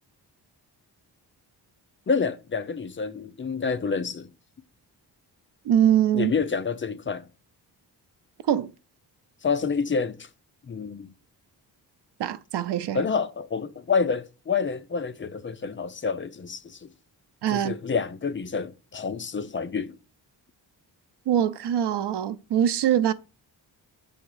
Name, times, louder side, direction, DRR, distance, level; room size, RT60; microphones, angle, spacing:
voice 1, 2.1-4.3 6.1-7.3 9.4-10.3 10.6-11.1 12.9-16.9 17.5-20.0, left 5 dB, 30° left, 0.5 m, -28 dB
voice 2, 5.7-6.3 8.5-8.7 12.2-13.0 17.4-17.7 21.3-23.1, right 10 dB, 85° right, 0.6 m, -23 dB
8.3 x 3.6 x 6.4 m
wide cardioid pair, 130°, 40 cm